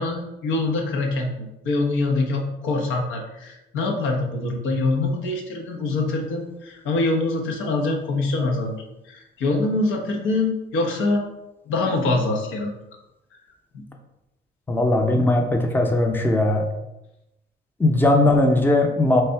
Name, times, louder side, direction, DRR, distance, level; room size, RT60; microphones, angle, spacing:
voice 1, 0.0-8.8 9.1-11.3 11.7-12.7 13.7-13.9, left 2 dB, 85° left, 2 dB, 0.8 m, -24 dB
voice 2, 14.7-16.7 17.8-19.2, left 2 dB, 10° left, 3 dB, 0.5 m, -19 dB
3.3 x 2.7 x 4.4 m, 0.92 s
cardioid pair, 90°, 20 cm